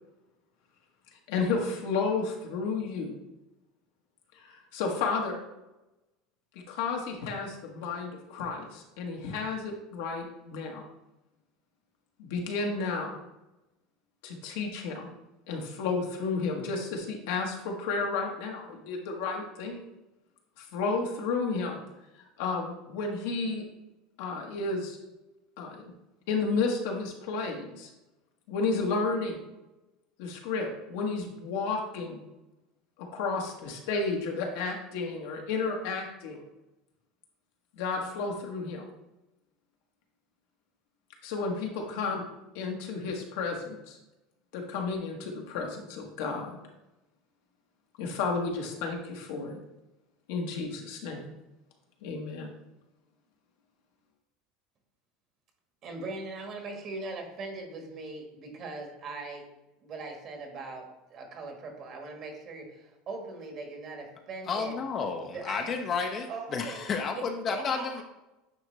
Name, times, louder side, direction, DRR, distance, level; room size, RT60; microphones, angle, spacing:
voice 1, 1.3-3.1 4.4-5.4 6.7-10.8 12.2-13.2 14.2-15.1 15.5-19.8 20.6-21.8 22.4-23.6 24.2-25.0 25.6-25.8 26.3-27.9 28.5-29.4 30.2-32.2 33.1-36.4 37.8-38.8 41.2-42.2 42.5-44.0 44.5-46.6 48.0-49.6 50.3-51.3 52.0-52.5, left 4 dB, 75° left, 1 dB, 1.3 m, -32 dB
voice 2, 55.8-59.4 59.8-64.8 65.3-65.9 66.3-66.9 67.1-67.2 67.5-68.0, right 3 dB, 45° right, 3 dB, 1.4 m, -40 dB
voice 3, 64.5-68.0, left 5 dB, 35° left, 4 dB, 0.6 m, -31 dB
9.0 x 3.2 x 3.2 m, 0.99 s
supercardioid pair, 125°, 0 cm